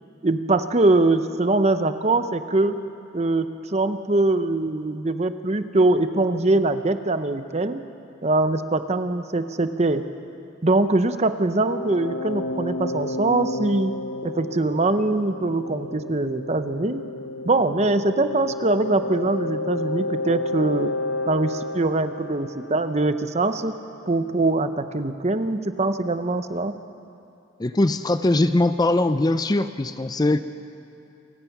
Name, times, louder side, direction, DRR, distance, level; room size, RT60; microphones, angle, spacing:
voice 1, 0.2-2.8 3.1-7.8 8.2-10.0 10.6-13.9 14.2-17.0 17.5-20.9 21.3-23.8 24.1-26.7, right 2 dB, 35° right, 10 dB, 0.7 m, -22 dB
sound 1, 11.6-23.2, left 2 dB, 70° left, 1.0 m, -31 dB
voice 2, 27.6-30.4, left 2 dB, 20° left, 11 dB, 0.4 m, -21 dB
28.0 x 16.0 x 6.0 m, 2.7 s
head